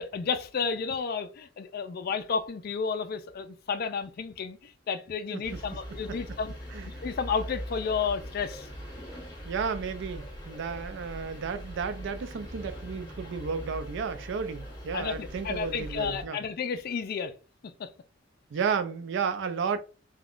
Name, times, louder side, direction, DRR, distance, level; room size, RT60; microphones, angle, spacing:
voice 1, 0.0-6.5 6.9-8.7 14.9-17.3 17.8-17.9, left 5 dB, 50° left, 0.4 m, -32 dB
sound 1, 5.4-16.2, equal, 25° left, 1.0 m, -41 dB
voice 2, 6.7-7.1 9.4-16.4 18.5-19.8, right 6 dB, 65° right, 0.4 m, -32 dB
3.5 x 2.3 x 2.4 m
head